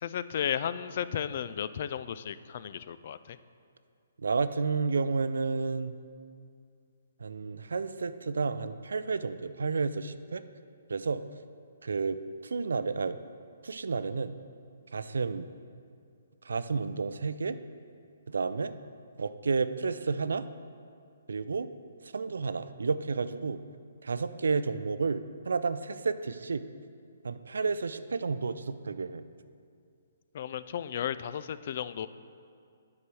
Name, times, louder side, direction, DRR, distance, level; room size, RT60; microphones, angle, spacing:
voice 1, 0.0-3.4 30.3-32.1, left 9 dB, 50° left, 14 dB, 0.3 m, -34 dB
voice 2, 4.2-6.0 7.2-10.4 10.9-11.3 11.8-12.2 12.4-13.2 13.6-14.4 14.9-15.5 16.4-17.6 18.3-18.7 19.2-20.5 21.3-21.7 22.0-23.6 24.0-26.7 27.2-29.2, right 4 dB, 75° right, 13 dB, 0.4 m, -31 dB
8.5 x 4.8 x 6.2 m, 2.3 s
hypercardioid pair, 140°, 0 cm